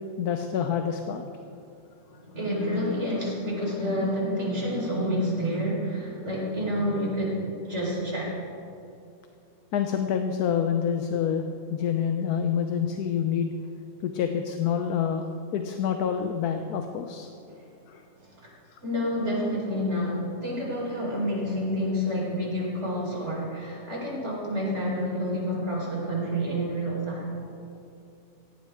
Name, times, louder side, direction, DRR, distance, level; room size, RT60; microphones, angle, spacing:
voice 1, 0.2-1.2 9.7-13.5 14.0-17.3 17.9-18.0 18.7-18.8, left 8 dB, 85° left, 6 dB, 1.3 m, -27 dB
voice 2, 2.1-7.4 7.6-8.3 17.5-17.6 18.4-18.5 18.8-27.3, equal, 45° right, -4 dB, 4.6 m, -29 dB
17.5 x 15.0 x 3.6 m, 2.7 s
omnidirectional pair, 1.6 m